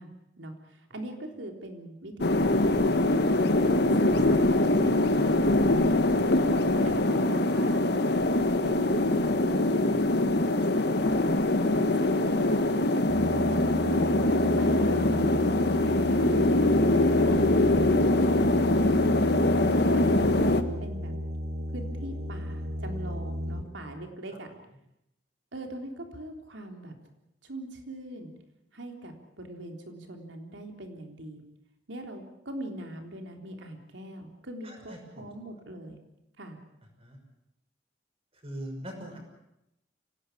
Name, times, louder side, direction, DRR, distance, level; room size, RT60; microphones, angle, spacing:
voice 1, 0.0-3.6 4.0-6.3 6.8-7.9 8.3-10.4 10.7-11.5 12.0-14.0 14.6-17.6 18.0-19.5 19.9-21.1 21.7-24.5 25.5-27.0 27.4-28.3 28.7-31.4 31.9-36.0 36.4-36.6, right 1 dB, 85° right, 4 dB, 3.7 m, -42 dB
sound 1, 2.2-20.6, left 2 dB, 60° left, 1.6 m, -23 dB
sound 2, 13.1-23.6, equal, 55° right, 2.7 m, -34 dB
voice 2, 34.6-35.3 37.0-37.2 38.3-39.2, equal, 35° right, 3 dB, 6.1 m, -41 dB
25.5 x 18.0 x 8.6 m, 0.86 s
head